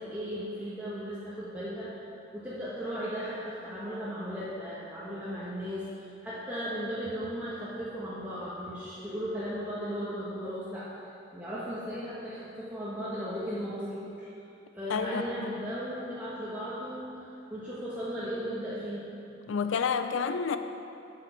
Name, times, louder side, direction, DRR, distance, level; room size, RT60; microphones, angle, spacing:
voice 1, 0.0-2.0 2.3-10.9 11.3-14.3 14.7-19.1, equal, 10° right, -11 dB, 1.2 m, -36 dB
voice 2, 14.9-15.7 19.5-20.6, left 6 dB, 75° left, 9 dB, 0.4 m, -30 dB
8.5 x 8.0 x 4.4 m, 2.7 s
head